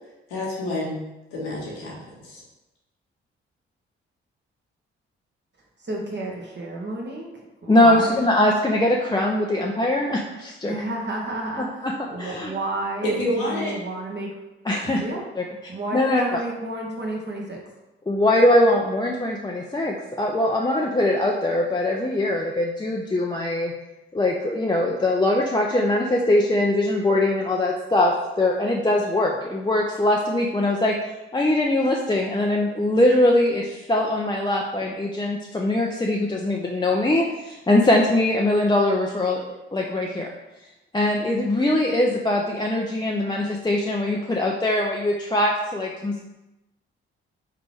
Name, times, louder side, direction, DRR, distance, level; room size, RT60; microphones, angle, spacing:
voice 1, 0.3-1.0 1.3-2.0 2.2-2.4 13.0-13.7, left 1 dB, 85° left, -5 dB, 1.2 m, -27 dB
voice 2, 5.8-7.3 7.6-8.2 10.6-14.3 14.9-15.2 15.7-17.6, right 2 dB, 40° right, -1 dB, 1.3 m, -31 dB
voice 3, 7.7-10.7 11.8-11.9 12.2-12.5 14.7-15.0 15.4-15.5 15.9-16.4 18.1-23.7 24.1-31.0 31.3-39.4 39.7-40.3 40.9-46.2, left 1 dB, 15° left, -1 dB, 0.5 m, -22 dB
3.8 x 3.5 x 3.4 m, 1.0 s
hypercardioid pair, 40°, 29 cm